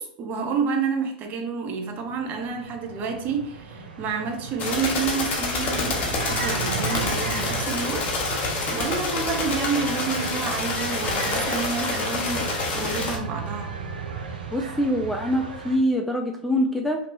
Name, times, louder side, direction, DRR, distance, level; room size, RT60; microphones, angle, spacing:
voice 1, 0.0-13.7, right 5 dB, 35° right, 0.8 m, -29 dB
sound 1, 2.0-15.8, right 5 dB, 80° right, 0.8 m, -35 dB
sound 2, 4.6-13.2, left 3 dB, 40° left, 1.1 m, -27 dB
voice 2, 14.5-17.0, equal, 5° left, 0.4 m, -24 dB
4.4 x 2.9 x 2.6 m
hypercardioid pair, 95°, 5 cm